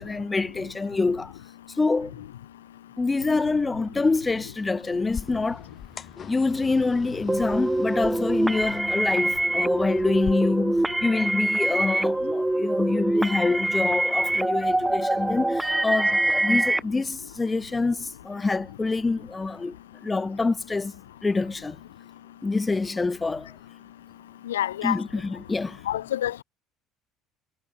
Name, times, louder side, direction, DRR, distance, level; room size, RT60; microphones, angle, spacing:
voice 1, 0.0-1.3 1.8-2.1 3.0-5.7 6.3-19.8 20.0-20.9 21.2-21.8 22.4-23.5 24.8-25.8, left 3 dB, 20° left, 1.0 m, -26 dB
sound 1, 5.1-10.3, left 7 dB, 40° left, 1.5 m, -41 dB
sound 2, 7.3-16.8, right 1 dB, 10° right, 1.7 m, -24 dB
voice 2, 24.5-25.0 25.9-26.4, left 12 dB, 80° left, 1.0 m, -27 dB
hypercardioid pair, 60°, 0 cm